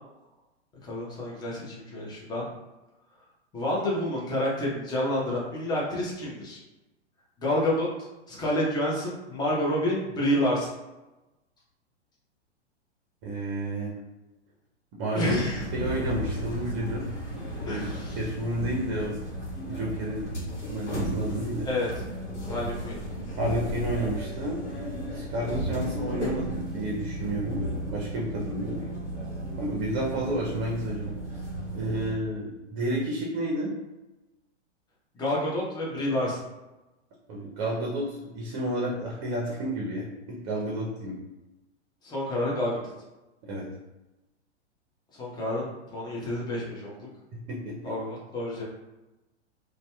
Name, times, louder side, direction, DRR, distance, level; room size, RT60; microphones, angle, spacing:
voice 1, 0.8-2.5 3.5-6.6 7.4-7.9 8.3-10.7 15.1-15.6 17.7-18.2 21.6-21.9 22.4-23.0 35.1-36.4 42.0-42.8 45.1-47.1 47.8-48.6, left 1 dB, 10° left, -5 dB, 0.6 m, -29 dB
voice 2, 13.2-14.0 15.0-15.4 15.7-17.1 17.4-17.9 18.2-19.2 19.7-20.3 20.7-21.7 23.3-24.6 25.1-27.6 27.9-28.8 29.6-31.4 31.7-33.7 37.3-41.2 43.4-43.7 47.3-47.9, right 1 dB, 40° right, -3 dB, 0.6 m, -31 dB
sound 1, 15.2-32.1, right 1 dB, 75° left, 0.9 m, -34 dB
2.6 x 2.2 x 2.2 m, 1.0 s
hypercardioid pair, 115°, 35 cm